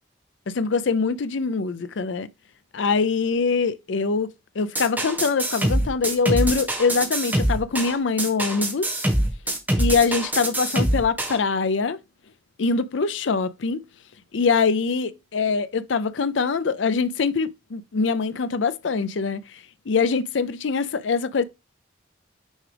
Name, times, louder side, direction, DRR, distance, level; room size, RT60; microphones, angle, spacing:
voice 1, 0.5-2.3 2.7-8.9 9.8-12.0 12.6-13.8 14.3-19.4 19.9-21.4, left 4 dB, 85° left, 0.5 m, -23 dB
sound 1, 4.8-11.4, right 1 dB, 10° right, 1.6 m, -24 dB
6.3 x 4.9 x 3.4 m
head